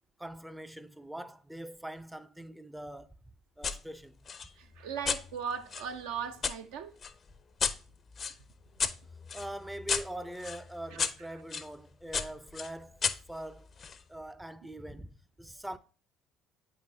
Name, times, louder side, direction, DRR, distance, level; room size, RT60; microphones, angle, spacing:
voice 1, 0.2-3.1 3.6-4.2 9.3-13.7 14.1-15.8, right 1 dB, 5° right, 0.5 m, -43 dB
sound 1, 3.6-3.8 4.3-6.6 7.0-11.7 12.1-14.0, left 6 dB, 40° left, 0.5 m, -35 dB
voice 2, 4.6-6.9 10.9-11.0, right 7 dB, 75° right, 0.7 m, -38 dB
8.0 x 4.9 x 2.7 m
hypercardioid pair, 55°, 0 cm